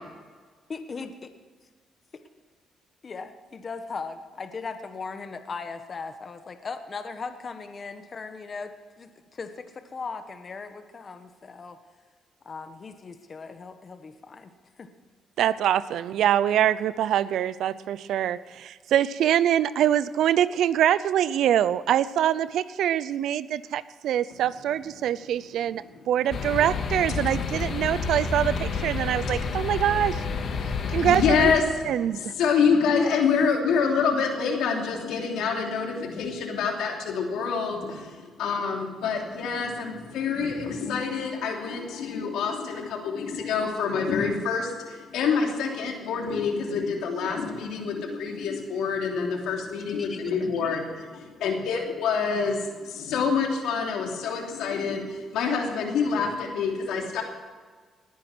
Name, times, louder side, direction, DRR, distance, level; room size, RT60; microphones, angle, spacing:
voice 1, 0.7-1.1 3.0-11.8 12.4-14.5 14.8-14.9 32.8-33.2 50.0-50.3, left 4 dB, 40° left, 8 dB, 1.3 m, -38 dB
voice 2, 15.4-30.2 30.9-31.5 31.9-32.3, right 10 dB, 75° right, 17 dB, 0.6 m, -24 dB
sound 1, 26.3-31.6, left 5 dB, 55° left, 1.9 m, -29 dB
voice 3, 30.6-57.2, left 5 dB, 85° left, 1 dB, 3.0 m, -27 dB
19.5 x 10.0 x 6.2 m, 1.5 s
cardioid pair, 90°, 0 cm